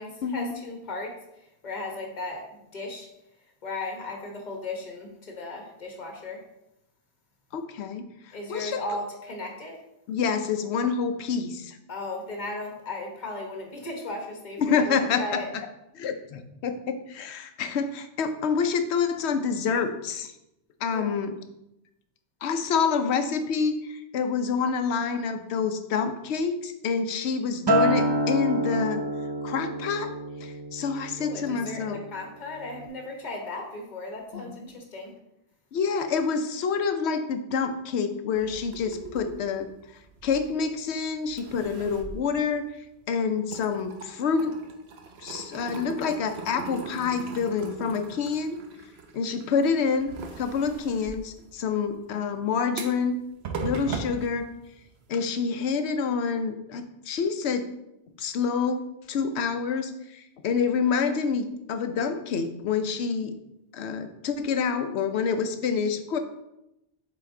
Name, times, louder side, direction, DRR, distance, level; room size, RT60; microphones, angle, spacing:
voice 1, 0.0-3.1 3.6-6.4 8.3-9.8 11.9-15.5 20.9-21.1 31.2-35.1, left 2 dB, 45° left, 2 dB, 1.3 m, -36 dB
voice 2, 7.5-8.1 8.5-8.8 10.1-11.8 14.6-15.4 15.9-20.3 20.8-21.3 22.4-29.0 29.4-30.1 30.4-32.0 34.3-34.5 35.7-39.7 40.2-42.7 43.1-44.6 45.2-48.6 49.1-50.1 50.4-53.2 53.6-54.5 55.1-57.7 58.2-63.3 63.7-66.2, left 5 dB, 90° left, 9 dB, 0.9 m, -27 dB
Acoustic guitar, 27.7-32.1 32.5-32.9, right 1 dB, 40° right, 0.4 m, -28 dB
sound 1, 38.4-40.9 41.3-43.1 43.4-55.1, right 4 dB, 75° right, 1.0 m, -40 dB
7.6 x 4.0 x 3.7 m, 0.87 s
omnidirectional pair, 1.1 m